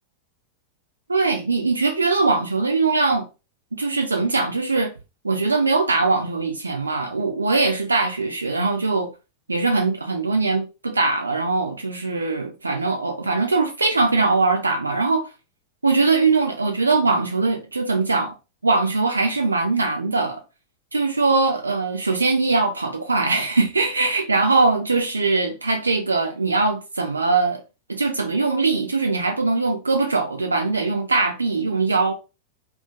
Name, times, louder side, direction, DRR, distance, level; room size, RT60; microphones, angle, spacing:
voice 1, 1.1-3.3 3.7-4.9 5.2-9.1 9.5-15.3 15.8-18.3 18.6-20.4 20.9-27.6 27.9-32.1, right 3 dB, 80° right, 0.3 m, -21 dB
2.4 x 2.3 x 2.3 m
figure-of-eight pair, 90°, 0 cm